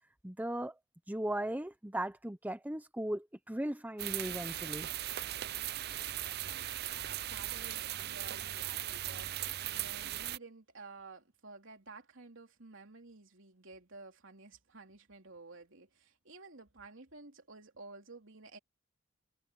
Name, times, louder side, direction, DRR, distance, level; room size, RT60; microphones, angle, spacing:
voice 1, 0.2-0.8 1.1-4.9, right 1 dB, 10° right, 0.8 m, -37 dB
sound 1, 4.0-10.4, right 13 dB, 55° right, 0.5 m, -38 dB
voice 2, 6.9-18.6, right 3 dB, 70° right, 3.4 m, -53 dB
head